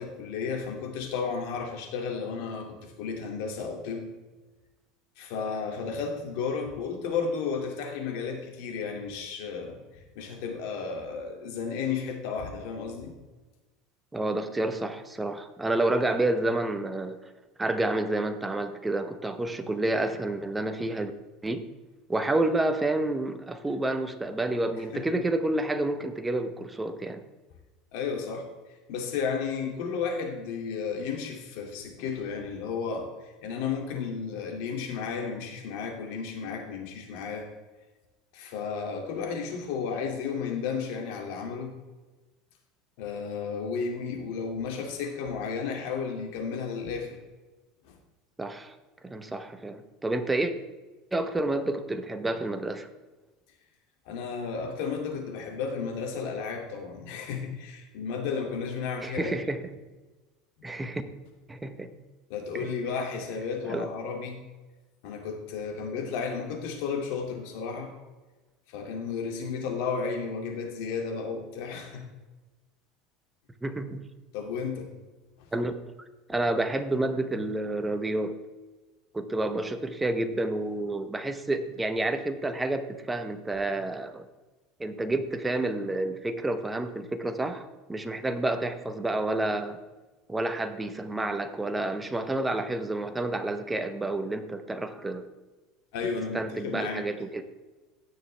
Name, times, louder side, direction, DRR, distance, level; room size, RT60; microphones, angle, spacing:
voice 1, 0.0-4.1 5.2-9.8 10.2-13.1 24.9-25.0 27.9-28.4 28.9-37.5 38.3-41.7 43.0-47.2 54.1-59.4 62.3-64.4 65.0-67.9 68.7-72.1 74.3-74.9 95.9-97.0, left 5 dB, 70° left, 2 dB, 2.3 m, -33 dB
voice 2, 14.1-17.2 17.6-21.1 21.4-21.6 22.1-27.2 48.4-48.7 49.0-50.5 51.1-52.9 59.0-59.6 60.6-61.0 61.5-61.9 62.5-62.7 63.7-63.9 73.6-74.0 75.5-75.7 76.3-78.4 79.1-84.2 84.8-89.8 90.3-95.2 96.3-97.4, right 2 dB, 10° right, 8 dB, 0.9 m, -29 dB
16.5 x 6.5 x 3.3 m, 1.2 s
supercardioid pair, 125°, 0 cm